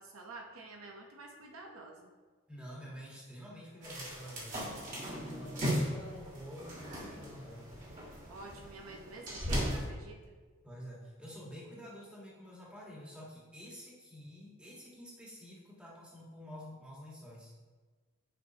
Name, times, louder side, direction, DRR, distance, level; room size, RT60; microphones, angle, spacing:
voice 1, 0.0-2.1 8.3-10.3, right 3 dB, 70° right, 1 dB, 0.8 m, -49 dB
voice 2, 2.5-4.6 4.9-7.7 10.6-17.5, equal, 5° right, -5 dB, 1.5 m, -49 dB
sound 1, 3.8-9.9, equal, 35° right, 1.8 m, -37 dB
10.0 x 5.6 x 2.9 m, 1.4 s
head